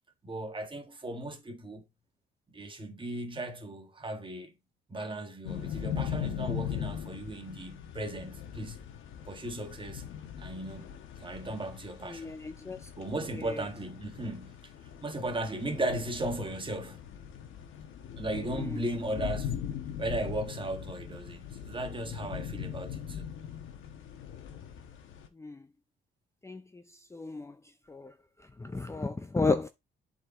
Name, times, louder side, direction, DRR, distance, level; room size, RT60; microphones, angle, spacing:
voice 1, 0.2-1.8 2.5-4.5 4.9-8.8 9.3-10.0 10.4-10.9 11.2-12.4 13.0-14.6 15.0-17.0 18.2-19.5 20.0-23.3, right 1 dB, 25° right, 1.7 m, -36 dB
sound 1, 5.4-25.3, left 9 dB, 85° left, 1.2 m, -40 dB
voice 2, 12.1-12.8 25.4-25.6 26.4-26.8 27.1-27.5 27.9-28.1 28.6-29.7, left 3 dB, 15° left, 0.6 m, -32 dB
8.1 x 4.3 x 3.8 m
cardioid pair, 90°, 20 cm